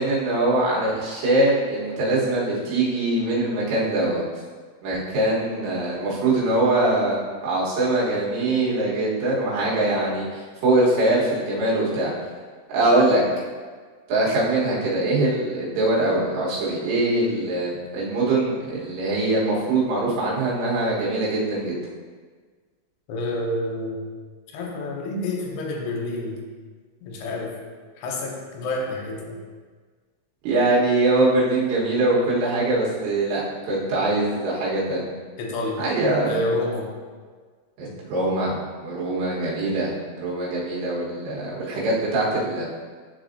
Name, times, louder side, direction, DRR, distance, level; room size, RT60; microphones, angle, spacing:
voice 1, 0.0-4.2 4.8-12.1 12.7-13.2 14.1-21.8 30.4-35.1 35.8-36.4 37.8-38.6 38.8-42.7, right 2 dB, 85° right, -6 dB, 3.6 m, -22 dB
voice 2, 23.1-24.1 24.5-26.4 27.0-27.6 28.0-29.4 35.4-35.8 36.3-36.9, left 2 dB, 80° left, 0 dB, 2.9 m, -28 dB
10.5 x 4.1 x 2.6 m, 1.5 s
omnidirectional pair, 4.7 m